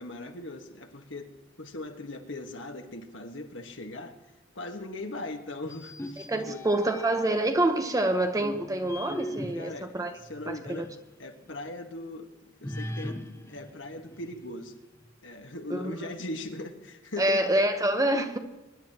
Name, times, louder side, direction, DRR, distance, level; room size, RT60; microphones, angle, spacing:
voice 1, 0.0-1.3 1.6-4.1 4.5-6.6 9.5-10.9 11.2-13.2 13.5-14.8 15.2-17.4, left 2 dB, 70° left, 4 dB, 1.6 m, -39 dB
sound 1, 5.6-7.5 8.1-11.1 11.4-11.5 12.6-14.7, equal, 15° left, 0.9 m, -40 dB
voice 2, 6.3-10.1 10.5-10.8 15.7-16.0 17.2-18.4, right 1 dB, 20° right, 7 dB, 1.0 m, -26 dB
23.5 x 11.0 x 3.0 m, 1.1 s
head